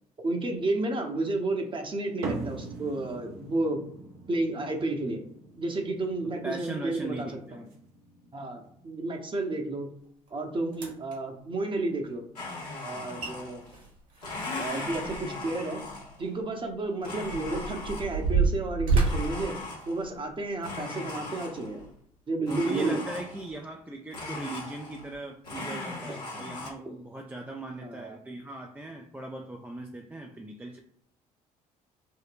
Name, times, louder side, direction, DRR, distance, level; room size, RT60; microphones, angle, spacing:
voice 1, 0.2-3.8 4.3-5.2 5.6-7.7 8.3-9.9 10.3-12.2 12.8-13.6 14.6-15.8 16.2-19.6 19.9-21.9 22.3-23.0 26.9-27.0 27.8-28.2, right 2 dB, 25° right, 3 dB, 0.8 m, -31 dB
sound 1, 2.2-8.9, right 3 dB, 65° right, 0.8 m, -42 dB
voice 2, 6.4-7.7 22.5-30.8, right 2 dB, 10° right, 1 dB, 0.4 m, -38 dB
sound 2, 10.3-10.4 10.7-11.2 12.9-13.0 13.2-13.3 13.7-15.5 15.8-15.9 16.6-20.4 21.0-21.2 21.8-21.9, right 4 dB, 45° right, 1.3 m, -29 dB
Domestic sounds home sounds, 12.4-13.8 14.2-16.3 17.0-18.3 19.0-20.2 20.6-21.8 22.4-23.6 24.1-25.2 25.4-26.7, left 2 dB, 85° left, 1.0 m, -38 dB
3.6 x 2.1 x 2.6 m, 0.69 s
figure-of-eight pair, 50°, 19 cm